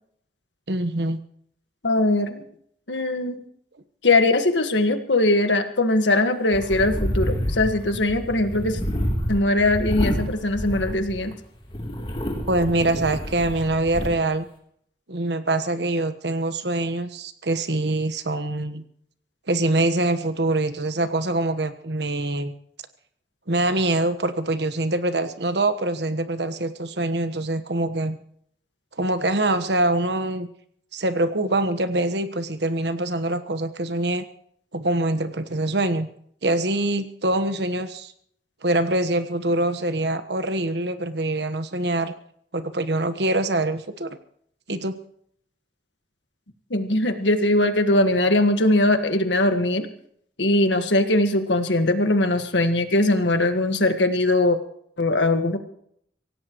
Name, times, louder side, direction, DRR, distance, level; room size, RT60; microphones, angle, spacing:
voice 1, 0.7-1.2 12.5-14.5 15.1-18.8 19.5-22.5 23.5-28.2 29.0-30.5 30.9-34.2 34.7-36.1 36.4-38.1 38.6-42.1 42.5-44.2 44.7-45.0, right 2 dB, 70° right, 10 dB, 1.3 m, -24 dB
voice 2, 1.8-2.4 2.9-3.4 4.0-8.8 9.3-11.3 46.7-49.9 50.4-54.6 55.0-55.6, left 2 dB, 85° left, 7 dB, 1.7 m, -21 dB
sound 1, 6.5-11.3 11.7-14.1, equal, 30° left, 3.4 m, -28 dB
25.0 x 17.0 x 3.1 m, 0.67 s
head